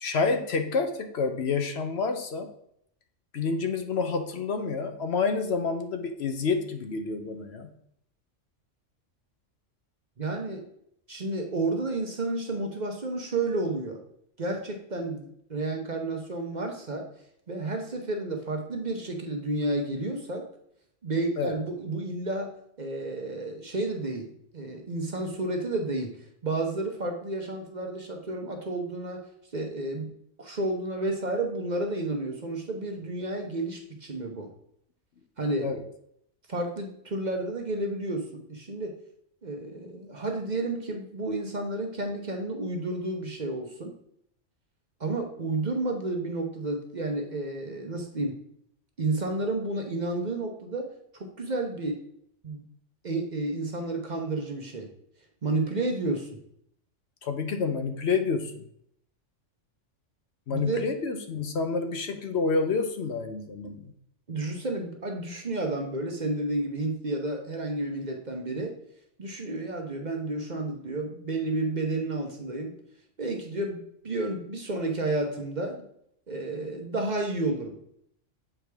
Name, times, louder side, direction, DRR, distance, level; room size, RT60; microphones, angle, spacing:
voice 1, 0.0-2.5 3.3-7.7 21.4-21.6 35.6-35.8 57.2-58.6 60.5-63.9, left 4 dB, 60° left, 7 dB, 0.9 m, -28 dB
voice 2, 10.2-10.6 11.1-14.0 14.4-17.1 17.5-20.5 21.0-22.5 22.8-24.3 24.5-29.2 29.5-30.1 30.4-34.5 35.4-35.7 36.5-38.9 39.4-43.9 45.0-48.4 49.0-52.0 52.4-52.6 53.0-54.9 55.4-56.3 60.5-60.9 64.3-68.8 69.2-72.7 73.2-75.8 76.3-77.8, right 2 dB, 40° right, 3 dB, 0.9 m, -31 dB
7.6 x 4.7 x 3.4 m, 0.72 s
omnidirectional pair, 1.3 m